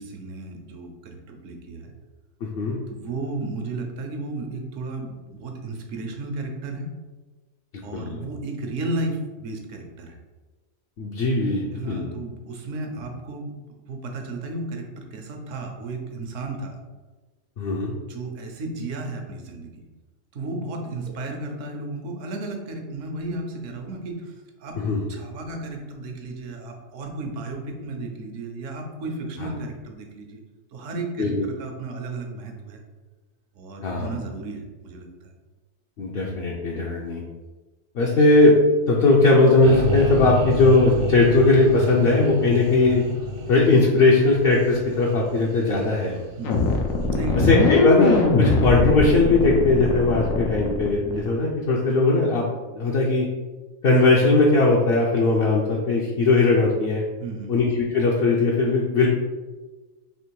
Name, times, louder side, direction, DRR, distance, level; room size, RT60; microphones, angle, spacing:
voice 1, 0.0-1.9 2.9-6.9 7.8-10.2 11.7-13.5 13.9-16.8 18.1-19.8 20.3-24.8 25.1-30.4 30.7-32.8 33.5-35.3 46.4-46.6 47.1-47.8 57.2-57.5, right 2 dB, 70° right, 3 dB, 1.0 m, -33 dB
voice 2, 2.4-2.8 7.9-8.2 11.0-12.1 17.6-18.0 24.8-25.0 29.4-29.5 31.2-31.5 33.8-34.1 36.0-37.2 37.9-38.6 38.9-43.0 43.5-46.2 47.5-52.5 52.7-53.3 53.8-57.0 57.5-59.1, left 3 dB, 60° left, -3 dB, 0.7 m, -19 dB
sound 1, 39.6-46.7, equal, 90° right, 1.2 m, -29 dB
sound 2, 46.4-51.3, left 3 dB, 85° left, 1.1 m, -21 dB
3.4 x 2.9 x 4.5 m, 1.2 s
omnidirectional pair, 1.4 m